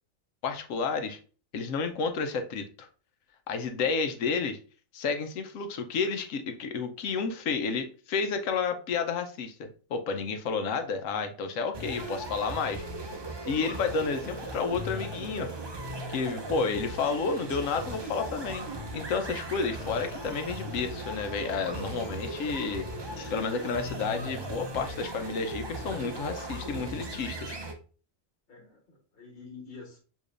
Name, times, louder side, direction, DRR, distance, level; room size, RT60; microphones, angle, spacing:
voice 1, 0.4-1.2 1.5-2.9 3.5-4.6 4.9-12.8 13.5-15.5 16.1-18.7 18.9-22.9 23.2-27.6, left 5 dB, 80° left, 7 dB, 1.1 m, -31 dB
sound 1, 11.7-27.7, right 1 dB, 35° right, 0.4 m, -38 dB
voice 2, 28.5-30.0, left 4 dB, 45° left, 0 dB, 1.4 m, -48 dB
6.6 x 3.1 x 2.5 m, 0.38 s
omnidirectional pair, 1.4 m